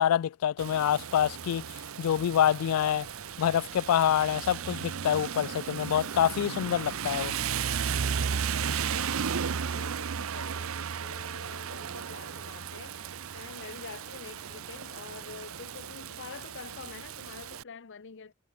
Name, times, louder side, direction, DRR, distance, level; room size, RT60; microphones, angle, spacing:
voice 1, 0.0-1.7 2.0-3.1 3.4-7.3, left 9 dB, 90° left, 0.3 m, -26 dB
Rain, 0.6-17.6, right 7 dB, 70° right, 0.7 m, -35 dB
sound 1, 2.9-15.9, right 2 dB, 25° right, 1.9 m, -59 dB
voice 2, 8.9-9.3 9.7-18.3, left 5 dB, 60° left, 0.7 m, -47 dB
head